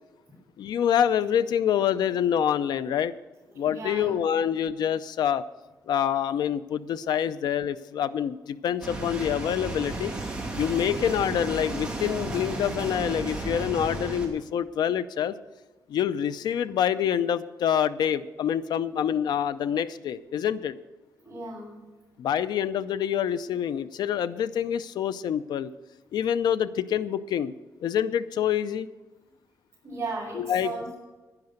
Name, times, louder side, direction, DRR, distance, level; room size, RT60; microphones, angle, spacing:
voice 1, 0.6-3.1 3.6-5.4 5.9-10.1 10.6-15.4 15.9-20.8 22.2-25.7 26.1-27.5 27.8-28.9 30.3-30.7, left 9 dB, 90° left, 14 dB, 0.5 m, -26 dB
voice 2, 3.5-4.1 21.2-21.8 29.8-30.9, right 3 dB, 30° right, -7 dB, 5.1 m, -36 dB
sound 1, 8.8-14.3, right 2 dB, 10° right, 2.7 m, -33 dB
10.5 x 10.5 x 6.6 m, 1.2 s
cardioid pair, 120°, 7 cm